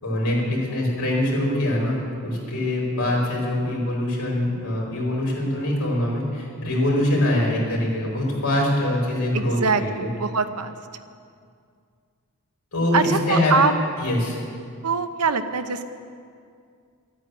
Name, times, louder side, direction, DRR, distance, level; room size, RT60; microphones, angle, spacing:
voice 1, 0.0-10.1 12.7-13.5 14.0-14.4, left 1 dB, 70° left, -3 dB, 4.8 m, -23 dB
voice 2, 9.3-10.8 12.9-13.7 14.8-15.8, right 4 dB, 85° right, 9 dB, 0.9 m, -23 dB
13.5 x 9.4 x 9.4 m, 2.2 s
head